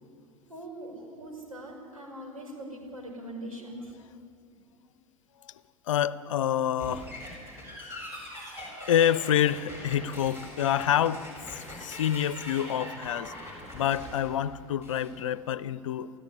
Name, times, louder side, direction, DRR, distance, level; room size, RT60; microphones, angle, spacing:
voice 1, 0.5-3.9, right 1 dB, 80° right, 0 dB, 5.4 m, -41 dB
voice 2, 5.9-7.5 8.9-13.4 13.7-16.1, left 10 dB, 65° left, 18 dB, 0.7 m, -27 dB
sound 1, 6.8-15.1, left 1 dB, 15° right, 7.8 m, -42 dB
29.5 x 14.0 x 9.8 m, 2.6 s
figure-of-eight pair, 80°, 18 cm